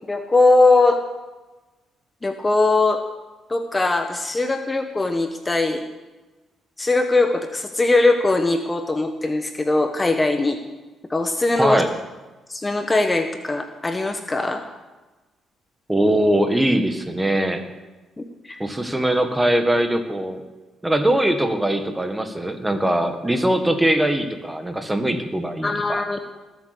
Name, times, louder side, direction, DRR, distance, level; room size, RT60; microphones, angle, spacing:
voice 1, 0.1-1.0 2.2-3.0 3.5-5.8 6.8-10.6 11.1-11.8 12.5-14.6 18.2-18.6 25.6-26.2, left 2 dB, 20° left, 6 dB, 1.1 m, -20 dB
voice 2, 11.6-11.9 15.9-17.6 18.6-20.4 20.8-26.0, right 1 dB, 10° right, 7 dB, 1.7 m, -21 dB
19.5 x 8.3 x 6.8 m, 1.2 s
cardioid pair, 90°, 0 cm